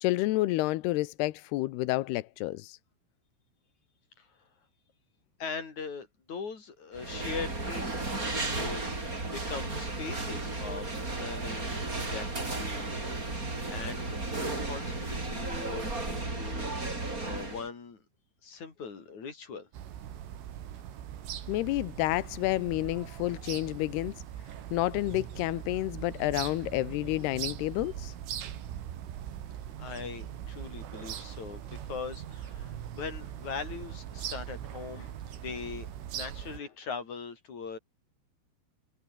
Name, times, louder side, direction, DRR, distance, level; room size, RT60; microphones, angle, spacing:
voice 1, 0.0-2.8 21.5-24.2 24.7-28.1, left 18 dB, 80° left, 2.3 m, -30 dB
voice 2, 5.4-13.3 13.7-18.0 18.4-19.7 29.8-37.8, left 5 dB, 35° left, 5.6 m, -41 dB
sound 1, 6.9-17.7, right 2 dB, 15° right, 4.7 m, -34 dB
sound 2, 19.7-36.6, right 10 dB, 75° right, 5.2 m, -41 dB
omnidirectional pair, 5.8 m